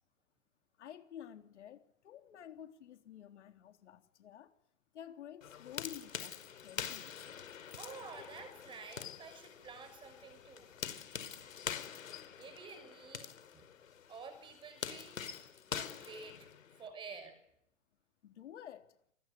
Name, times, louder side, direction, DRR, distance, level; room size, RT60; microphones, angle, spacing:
voice 1, 0.8-4.5 4.9-7.2 18.2-18.9, left 10 dB, 60° left, 3.6 m, -51 dB
sound 1, 5.4-16.9, left 8 dB, 75° left, 5.0 m, -45 dB
voice 2, 7.8-10.7 11.3-11.4 12.3-13.6 14.1-15.2 15.7-16.5 16.8-17.4, right 5 dB, 10° right, 6.4 m, -50 dB
29.0 x 22.0 x 9.3 m
hypercardioid pair, 160°, 39 cm